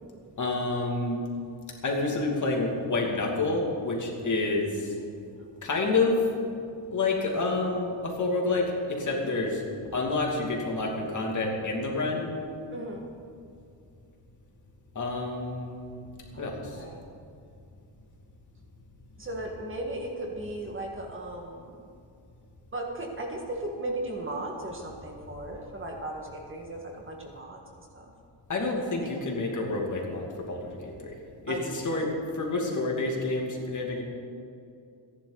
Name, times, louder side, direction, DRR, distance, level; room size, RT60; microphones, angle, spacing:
voice 1, 0.4-1.2 1.8-4.9 5.6-6.3 6.9-9.6 9.9-12.3 14.9-15.8 16.4-16.8 28.5-31.1 31.4-32.1 32.3-34.0, left 3 dB, 40° left, 0 dB, 2.7 m, -28 dB
voice 2, 12.7-13.1 16.3-17.0 19.2-21.8 22.7-27.6 27.9-28.1 29.0-29.1 31.5-32.1, right 1 dB, 30° right, 0 dB, 1.9 m, -36 dB
29.0 x 11.0 x 4.1 m, 2.5 s
wide cardioid pair, 170°, 44 cm